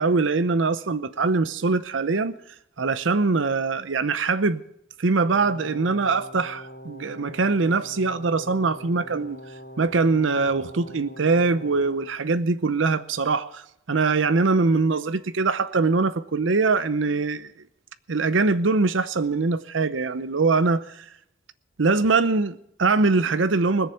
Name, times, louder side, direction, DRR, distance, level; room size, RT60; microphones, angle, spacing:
voice 1, 0.0-2.3 2.8-4.6 5.0-9.4 9.8-17.5 18.1-21.1 21.8-23.9, right 3 dB, 85° right, 0.7 m, -22 dB
Brass instrument, 5.2-12.1, equal, 65° left, 3.3 m, -43 dB
20.0 x 7.2 x 8.5 m
head